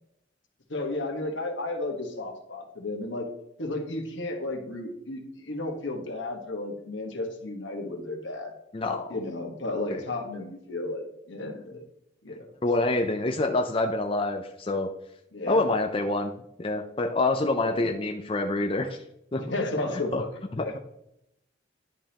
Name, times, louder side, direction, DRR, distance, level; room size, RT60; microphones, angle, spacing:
voice 1, 0.7-3.3 3.6-8.5 9.1-11.8 12.2-12.5 15.3-15.7 17.7-17.9 19.5-20.3 20.6-20.7, left 2 dB, 80° left, 3 dB, 1.5 m, -33 dB
voice 2, 8.7-9.2 9.9-10.0 12.6-14.9 15.5-16.3 16.6-19.0 19.3-19.4 20.1-20.2 20.5-20.7, left 2 dB, 30° left, 4 dB, 0.5 m, -26 dB
10.5 x 5.2 x 2.9 m, 0.79 s
head